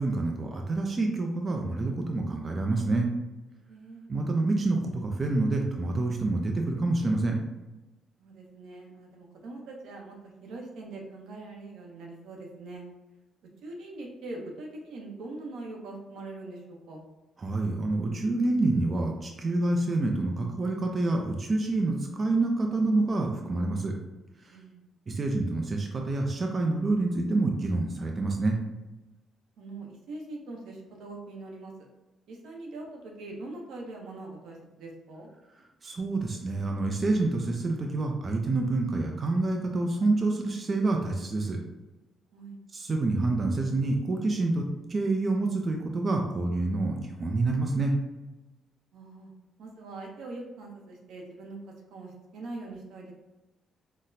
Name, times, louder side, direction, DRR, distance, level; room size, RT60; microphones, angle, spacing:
voice 1, 0.0-3.1 4.1-7.4 17.4-23.9 25.1-28.6 35.8-41.6 42.7-47.9, right 2 dB, 35° right, 1 dB, 0.4 m, -27 dB
voice 2, 3.7-4.0 8.2-12.9 13.6-17.0 24.5-24.9 29.6-31.7 32.3-35.3 42.3-42.6 48.9-49.3 49.6-51.6 51.9-53.1, right 2 dB, 80° right, 0 dB, 0.7 m, -42 dB
3.9 x 2.0 x 2.6 m, 1.1 s
cardioid pair, 90°, 0 cm